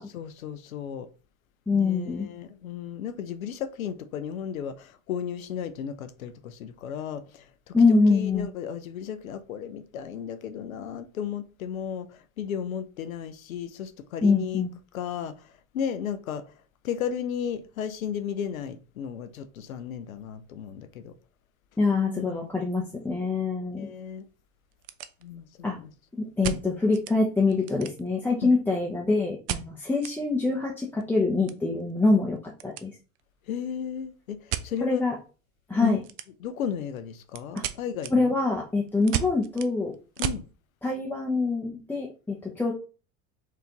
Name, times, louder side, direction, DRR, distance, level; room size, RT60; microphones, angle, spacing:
voice 1, 0.1-1.1 1.7-14.6 14.9-16.4 16.8-21.1 21.9-22.5 23.8-24.3 25.2-25.9 28.4-28.5 33.5-35.0 35.8-36.0 36.4-38.4 40.2-40.5, left 8 dB, 75° left, 0.6 m, -34 dB
voice 2, 1.7-2.3 7.7-8.5 14.2-14.7 21.8-23.9 25.6-25.8 26.2-32.9 34.8-35.1 35.7-36.0 37.5-37.6 38.1-39.9 40.8-42.7, left 3 dB, 5° left, 0.5 m, -25 dB
sound 1, 22.4-22.6 22.9-23.0 23.6-23.7 24.0-24.1 24.6-25.6 26.4-27.2 27.5-28.3 29.5-30.2 30.5-30.6 30.9-32.9 33.1-33.5 34.5-34.7 36.0-36.6 36.9-40.5, right 13 dB, 45° right, 0.5 m, -35 dB
4.5 x 2.5 x 2.9 m
figure-of-eight pair, 75°, 41 cm